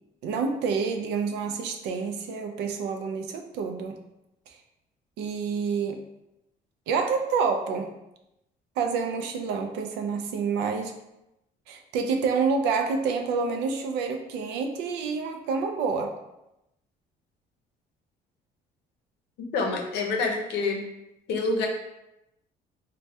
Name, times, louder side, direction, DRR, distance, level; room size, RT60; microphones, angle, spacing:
voice 1, 0.2-4.0 4.5-4.6 5.2-6.0 6.9-7.9 8.8-10.9 11.7-16.2, right 5 dB, 85° right, 5 dB, 0.4 m, -28 dB
voice 2, 19.5-20.8 21.3-21.7, left 3 dB, 80° left, 2 dB, 0.6 m, -26 dB
3.3 x 2.2 x 2.6 m, 0.89 s
cardioid pair, 110°, 17 cm